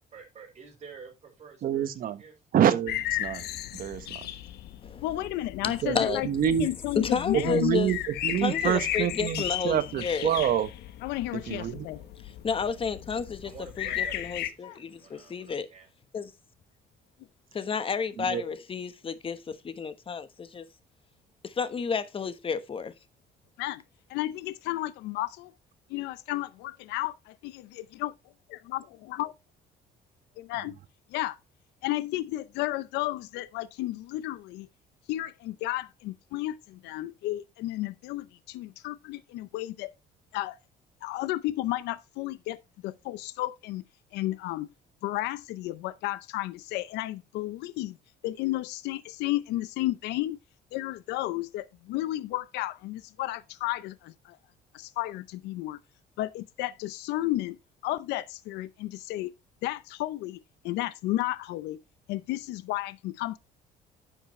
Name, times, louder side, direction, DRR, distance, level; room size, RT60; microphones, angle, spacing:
voice 1, 0.1-2.3 11.8-12.1 13.4-15.9, right 6 dB, 40° right, 5.0 m, -50 dB
voice 2, 1.6-2.2 2.5-3.5 3.7-4.1 5.8-6.0 6.2-6.7 7.3-10.7 11.5-11.9 18.2-18.4, right 10 dB, 60° right, 1.3 m, -27 dB
sound 1, 2.9-14.5, left 12 dB, 75° left, 1.0 m, -36 dB
voice 3, 5.0-7.8 11.0-12.0 14.6-14.8 23.6-23.8 24.1-25.5 25.9-28.1 28.5-29.3 30.4-30.8 31.1-31.4 31.8-34.7 35.1-39.9 40.3-40.6 41.0-43.8 44.1-44.7 45.0-48.0 48.2-50.4 50.7-54.4 54.7-55.8 56.2-57.6 57.8-59.3 59.6-61.8 62.1-63.4, left 16 dB, 90° left, 0.6 m, -32 dB
voice 4, 6.9-7.9 8.4-10.3 12.2-13.5 13.8-15.7 16.1-16.3 17.5-20.7 21.4-22.9, left 6 dB, 30° left, 1.1 m, -31 dB
10.5 x 7.3 x 3.1 m
cardioid pair, 110°, 17 cm